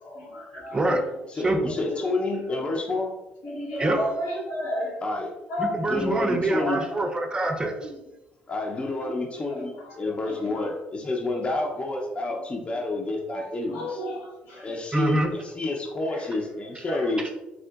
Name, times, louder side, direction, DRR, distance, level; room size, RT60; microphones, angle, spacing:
voice 1, 0.0-0.8 1.8-1.9 2.5-2.6 3.4-4.9 5.5-5.8 6.5-6.8 9.0-9.1 9.5-9.7 10.2-10.6 13.7-14.7 15.0-15.2 16.1-16.2 16.9-17.2, left 1 dB, 85° left, -4 dB, 1.4 m, -32 dB
voice 2, 0.7-1.0 1.4-1.7 3.8-4.0 5.6-7.9 14.9-15.3, right 2 dB, 20° right, 4 dB, 0.4 m, -25 dB
voice 3, 1.3-3.1 5.0-5.3 5.8-6.8 8.5-14.0 14.6-17.3, left 2 dB, 30° left, 1 dB, 0.5 m, -29 dB
3.7 x 2.4 x 2.3 m, 0.99 s
supercardioid pair, 65°, 4 cm